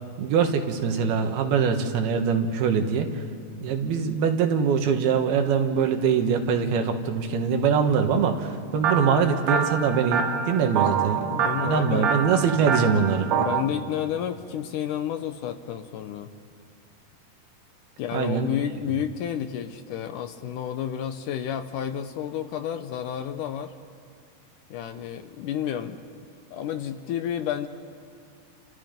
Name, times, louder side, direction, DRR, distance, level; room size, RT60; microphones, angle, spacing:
voice 1, 0.2-3.1 3.6-11.3 11.6-13.3 18.1-18.5, right 6 dB, 90° right, 5 dB, 3.4 m, -23 dB
sound 1, 8.8-13.6, right 7 dB, 65° right, 1.8 m, -26 dB
voice 2, 11.3-12.1 13.4-16.3 18.0-23.7 24.7-26.0 26.5-27.7, left 9 dB, 75° left, 8 dB, 2.0 m, -31 dB
30.0 x 27.5 x 5.2 m, 2.3 s
omnidirectional pair, 4.3 m